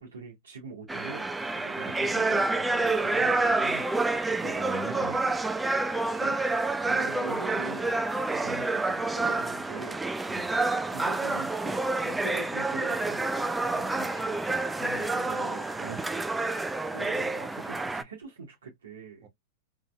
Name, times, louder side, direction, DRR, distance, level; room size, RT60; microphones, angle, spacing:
voice 1, 0.0-4.1 4.7-5.2 6.2-6.4 6.9-10.0 10.9-15.7 16.9-19.3, right 5 dB, 80° right, 0.9 m, -43 dB
sound 1, 0.9-18.0, right 2 dB, 10° right, 0.3 m, -28 dB
voice 2, 4.4-5.3 8.4-8.6 10.3-10.5 14.0-14.1 15.8-16.3 19.2-19.3, right 4 dB, 40° right, 0.9 m, -41 dB
2.8 x 2.7 x 2.3 m
hypercardioid pair, 105°, 0 cm